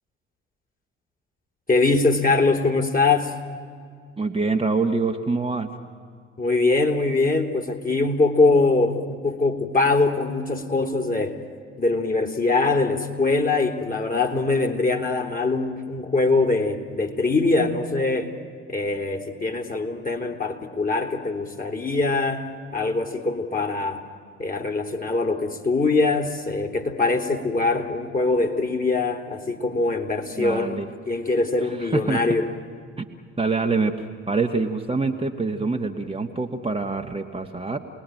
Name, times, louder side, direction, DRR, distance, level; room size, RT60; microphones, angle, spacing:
voice 1, 1.7-3.3 6.4-11.4 11.8-18.3 18.7-24.0 24.4-30.8 31.1-32.5, left 3 dB, 25° left, 6 dB, 3.1 m, -23 dB
voice 2, 4.2-5.7 30.4-30.9 31.6-32.2 33.0-33.1 33.4-37.8, right 3 dB, 15° right, 2 dB, 1.6 m, -25 dB
29.0 x 20.0 x 9.2 m, 2.2 s
figure-of-eight pair, 50°, 35 cm